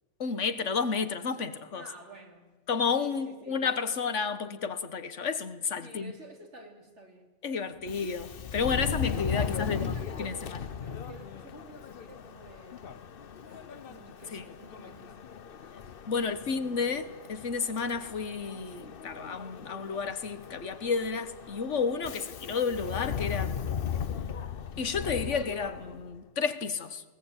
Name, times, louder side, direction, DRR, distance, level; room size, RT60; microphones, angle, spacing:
voice 1, 0.2-1.8 2.7-6.1 7.4-9.9 10.2-10.7 14.3-14.4 16.1-23.7 24.8-27.0, left 5 dB, 70° left, 1.6 m, -31 dB
voice 2, 1.7-2.6 2.9-3.7 5.8-7.3 9.3-12.9 13.4-15.3 15.5-17.0, right 1 dB, 65° right, 3.3 m, -52 dB
Subway metro underground, 7.8-26.2, left 7 dB, 50° left, 0.9 m, -37 dB
20.0 x 19.0 x 8.9 m
omnidirectional pair, 1.3 m